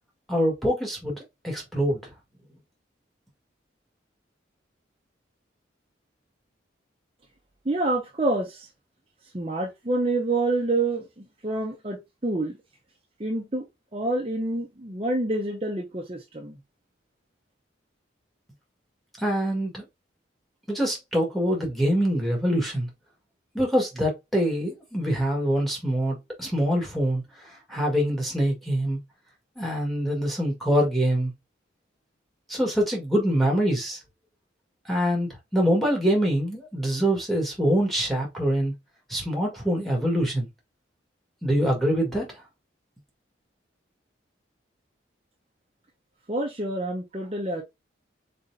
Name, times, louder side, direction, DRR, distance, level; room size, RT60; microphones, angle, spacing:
voice 1, 0.3-2.0 19.2-19.8 20.7-22.9 23.5-27.2 27.7-29.0 29.6-31.3 32.5-34.0 34.9-38.7 39.1-40.5 41.4-42.3, equal, ahead, 1.7 m, -24 dB
voice 2, 7.6-8.7 9.3-12.6 13.2-13.6 13.9-16.6 46.3-47.6, right 2 dB, 30° right, 0.8 m, -27 dB
4.3 x 4.0 x 2.7 m
head